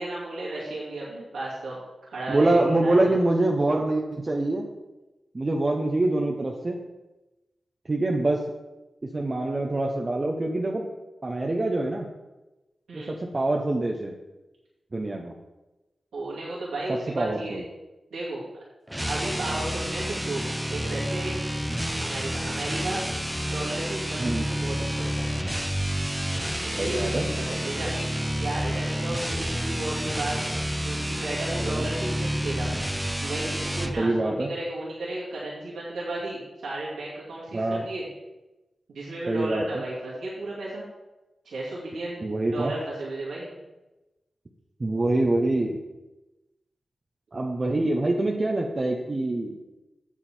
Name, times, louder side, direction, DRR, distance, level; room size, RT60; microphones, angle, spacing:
voice 1, 0.0-3.1 12.9-13.1 16.1-17.6 18.1-18.4 19.1-20.4 20.7-21.3 22.0-23.0 23.4-25.3 26.6-28.1 28.3-30.4 30.8-32.7 33.2-38.1 38.9-40.8 41.4-43.5, right 2 dB, 85° right, -7 dB, 2.4 m, -34 dB
voice 2, 2.3-4.7 5.3-6.8 7.9-8.4 9.0-10.9 11.2-12.1 12.9-14.1 14.9-15.3 17.2-17.6 24.2-24.4 26.8-27.2 31.6-31.8 34.0-34.5 37.5-37.8 39.3-39.6 42.2-42.7 44.8-45.8 47.3-49.6, right 2 dB, 45° right, 0 dB, 0.9 m, -25 dB
sound 1, 18.9-34.0, equal, 10° right, 0.8 m, -29 dB
7.4 x 7.2 x 4.5 m, 1.1 s
cardioid pair, 40°, 0 cm